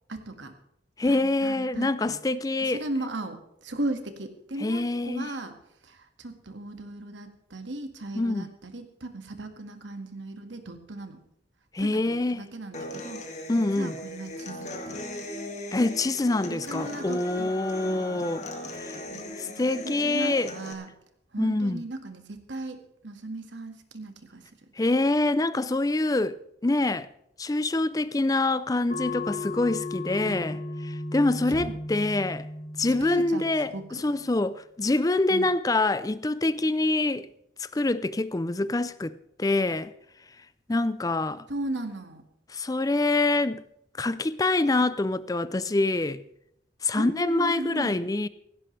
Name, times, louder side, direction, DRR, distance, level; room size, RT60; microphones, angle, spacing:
voice 1, 0.1-0.5 1.1-2.2 2.6-5.6 5.8-11.2 11.8-13.3 13.6-15.0 16.4-17.5 17.8-18.3 19.1-20.9 21.3-24.5 31.5-31.8 33.0-34.0 35.3-35.5 41.5-42.2 47.0-48.0, right 2 dB, 85° right, 1.9 m, -37 dB
voice 2, 1.0-2.8 4.6-5.3 8.2-8.5 11.7-12.4 13.5-14.0 15.7-18.4 18.8-18.9 19.4-20.5 21.4-21.8 24.8-27.1 27.4-32.5 32.8-37.3 37.6-39.9 40.7-41.4 42.5-43.6 44.0-46.2 46.8-48.3, left 2 dB, 20° left, 0.4 m, -26 dB
Human voice / Acoustic guitar, 12.7-20.7, left 1 dB, 40° left, 2.1 m, -39 dB
sound 1, 28.9-34.0, left 2 dB, 65° left, 2.2 m, -36 dB
16.5 x 16.5 x 3.3 m
head